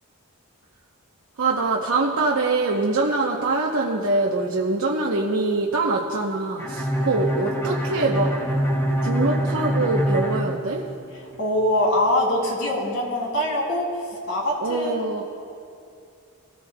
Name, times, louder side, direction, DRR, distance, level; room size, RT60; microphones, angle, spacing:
voice 1, 1.4-8.3 9.0-10.8 14.6-15.2, right 3 dB, 80° right, -2 dB, 0.8 m, -23 dB
Bowed string instrument, 6.6-11.4, equal, 10° left, 1.4 m, -25 dB
voice 2, 11.4-15.1, left 1 dB, 70° left, -1 dB, 2.7 m, -23 dB
21.0 x 13.5 x 2.2 m, 2.5 s
head